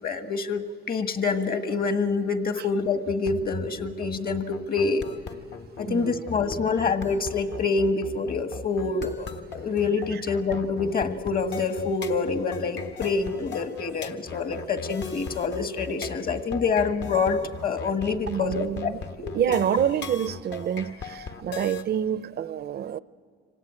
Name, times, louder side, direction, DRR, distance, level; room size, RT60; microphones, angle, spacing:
voice 1, 0.0-5.0 5.8-18.9 19.2-19.3, left 4 dB, 50° left, 1.5 m, -26 dB
sound 1, 3.1-21.8, left 5 dB, 65° left, 1.4 m, -38 dB
voice 2, 5.9-6.3 10.1-10.2 18.3-19.0 19.3-23.0, right 9 dB, 55° right, 0.6 m, -27 dB
25.5 x 18.0 x 8.8 m
cardioid pair, 90°, 20 cm